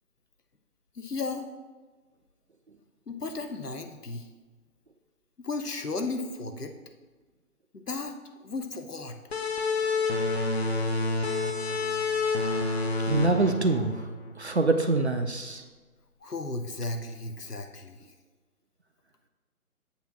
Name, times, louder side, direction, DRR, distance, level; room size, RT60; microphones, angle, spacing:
voice 1, 0.9-1.5 3.1-4.3 5.4-6.7 7.7-8.1 8.4-9.2 16.2-18.0, left 3 dB, 85° left, 6 dB, 0.8 m, -34 dB
sound 1, 9.3-14.6, left 3 dB, 45° left, 0.8 m, -28 dB
voice 2, 13.1-14.0 14.4-15.6, right 3 dB, 50° right, 6 dB, 0.4 m, -25 dB
8.3 x 2.9 x 6.0 m, 1.3 s
figure-of-eight pair, 145°, 45 cm